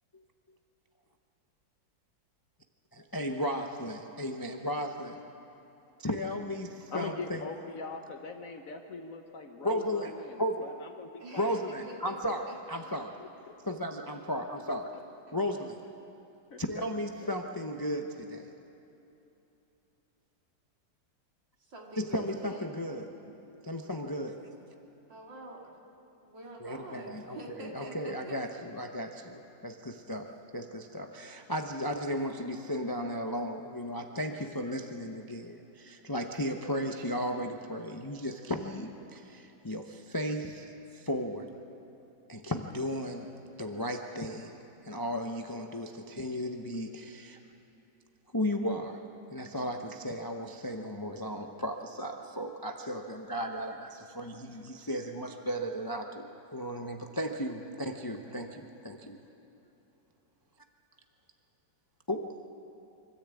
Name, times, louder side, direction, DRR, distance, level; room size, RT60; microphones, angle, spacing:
voice 1, 3.1-5.2 6.0-7.4 9.6-10.1 10.4-10.6 11.4-13.2 13.7-14.9 15.3-15.9 16.6-18.5 22.0-23.3 23.6-24.4 26.6-40.7 40.9-41.5 42.3-43.3 43.6-44.6 44.8-47.4 48.3-49.0 49.3-59.2 62.1-62.4, equal, 30° left, 4 dB, 0.4 m, -35 dB
voice 2, 6.9-11.6 13.2-13.6 14.7-14.8 16.5-16.8 17.2-17.3, left 4 dB, 55° left, 5 dB, 1.2 m, -42 dB
voice 3, 11.2-12.2 12.5-13.2 15.3-15.4 21.7-22.8 25.1-25.7 26.2-28.4 54.5-54.6, right 2 dB, 75° right, -1 dB, 3.2 m, -47 dB
24.5 x 14.0 x 8.4 m, 2.9 s
omnidirectional pair, 2.0 m